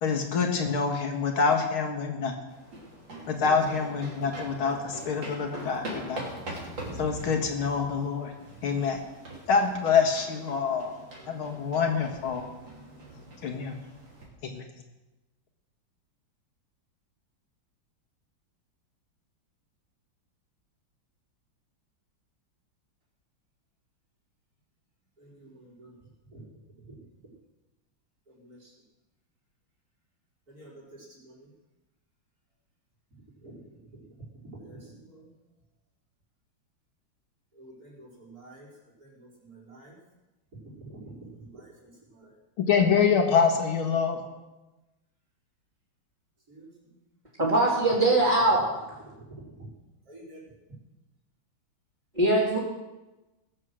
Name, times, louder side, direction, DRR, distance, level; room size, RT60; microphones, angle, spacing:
voice 1, 0.0-2.3 3.3-6.2 7.0-8.3 8.6-9.0 9.5-11.0 11.3-12.4 13.4-13.8 14.4-14.6 42.6-44.2, left 5 dB, 85° left, 3 dB, 2.6 m, -26 dB
sound 1, 2.5-14.3, right 1 dB, 60° right, 3.7 m, -42 dB
voice 2, 25.2-25.9 26.3-26.5 26.8-27.3 28.3-28.7 30.5-31.5 33.4-34.1 34.3-35.3 37.5-38.7 39.0-40.0 40.5-42.3 46.5-47.0 49.1-49.7 50.0-50.6, right 2 dB, 45° right, -7 dB, 5.1 m, -49 dB
voice 3, 47.4-48.9 52.1-52.6, right 2 dB, 20° right, -7 dB, 2.7 m, -22 dB
19.5 x 7.6 x 6.4 m, 1.1 s
omnidirectional pair, 2.3 m